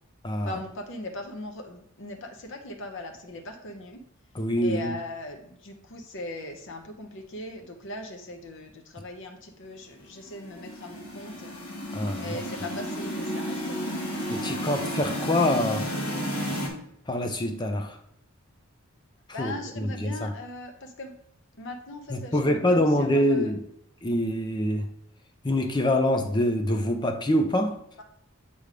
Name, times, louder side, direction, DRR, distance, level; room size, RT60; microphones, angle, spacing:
voice 1, 0.4-4.0 4.6-11.6 12.1-14.7 19.3-21.1 21.6-23.5, left 1 dB, 55° left, 4 dB, 0.7 m, -39 dB
voice 2, 4.3-4.9 11.9-12.4 14.3-16.0 17.1-18.0 19.4-20.3 22.1-23.6 24.0-24.9 25.4-27.8, left 1 dB, 20° left, 6 dB, 0.5 m, -25 dB
sound 1, 10.3-16.7, equal, 75° left, 1.3 m, -32 dB
7.0 x 3.3 x 5.1 m, 0.73 s
head